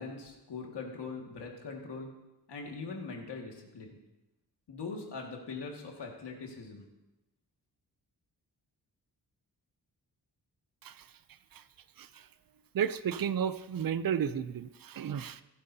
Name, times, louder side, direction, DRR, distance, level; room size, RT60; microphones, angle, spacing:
voice 1, 0.0-2.1 2.5-4.0 4.7-6.9, left 4 dB, 85° left, 1 dB, 2.1 m, -41 dB
voice 2, 12.7-15.4, right 8 dB, 55° right, 14 dB, 0.6 m, -32 dB
15.0 x 12.0 x 2.8 m, 0.97 s
wide cardioid pair, 100°, 40 cm